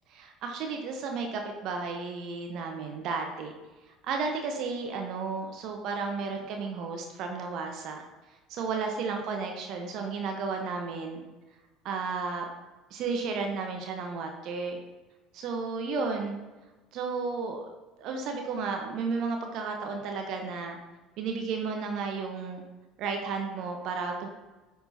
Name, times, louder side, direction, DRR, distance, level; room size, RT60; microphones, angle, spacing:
voice 1, 0.1-3.5 4.0-8.0 8.5-11.2 11.8-12.5 12.9-14.8 15.3-16.4 16.9-17.6 18.0-20.8 21.2-22.6 23.0-24.3, right 4 dB, 55° right, 3 dB, 1.0 m, -33 dB
9.8 x 6.0 x 2.8 m, 1.2 s
figure-of-eight pair, 65°, 0 cm